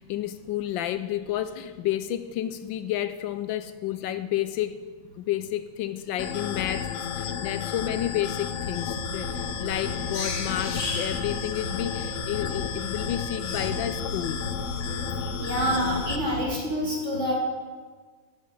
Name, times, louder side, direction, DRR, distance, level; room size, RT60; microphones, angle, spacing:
voice 1, 0.0-4.8 5.2-14.4, left 12 dB, 80° left, 11 dB, 1.3 m, -31 dB
sound 1, 6.2-16.2, left 7 dB, 60° left, 0.8 m, -32 dB
sound 2, 8.6-16.4, left 1 dB, 45° left, 1.9 m, -35 dB
voice 2, 15.2-17.3, equal, 35° right, -4 dB, 3.8 m, -27 dB
11.0 x 7.2 x 9.7 m, 1.5 s
omnidirectional pair, 2.1 m